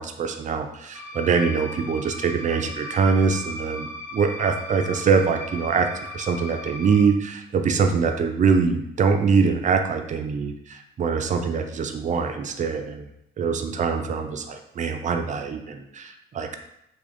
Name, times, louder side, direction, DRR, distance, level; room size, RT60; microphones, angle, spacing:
voice 1, 0.0-5.9 6.1-13.1 13.4-16.6, right 5 dB, 40° right, 6 dB, 0.4 m, -23 dB
sound 1, 0.9-7.0, left 2 dB, 65° left, 1.0 m, -37 dB
3.4 x 2.4 x 3.6 m, 0.80 s
cardioid pair, 90°, 20 cm